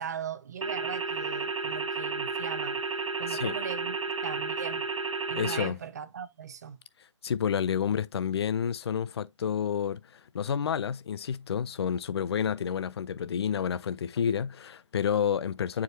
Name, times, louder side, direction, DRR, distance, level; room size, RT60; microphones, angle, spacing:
voice 1, 0.0-2.8 3.2-4.9 5.3-6.8, right 7 dB, 35° right, 0.5 m, -39 dB
sound 1, 0.6-5.7, right 4 dB, 80° right, 0.8 m, -32 dB
voice 2, 5.4-5.8 7.2-15.8, left 8 dB, 55° left, 0.4 m, -30 dB
7.3 x 4.8 x 2.7 m
hypercardioid pair, 160°, 16 cm